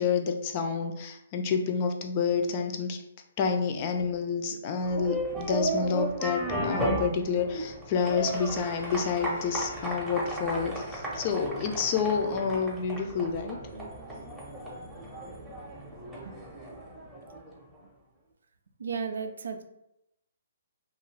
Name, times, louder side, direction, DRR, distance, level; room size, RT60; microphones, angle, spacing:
voice 1, 0.0-3.0 3.4-13.6, left 5 dB, 40° left, 5 dB, 0.4 m, -29 dB
sound 1, 4.8-17.6, right 1 dB, 5° right, 0.7 m, -35 dB
Brass instrument, 7.9-10.6, left 2 dB, 85° left, 0.8 m, -47 dB
voice 2, 18.8-19.6, right 5 dB, 75° right, 7 dB, 0.4 m, -34 dB
2.4 x 2.3 x 3.2 m, 0.81 s
hypercardioid pair, 145°, 0 cm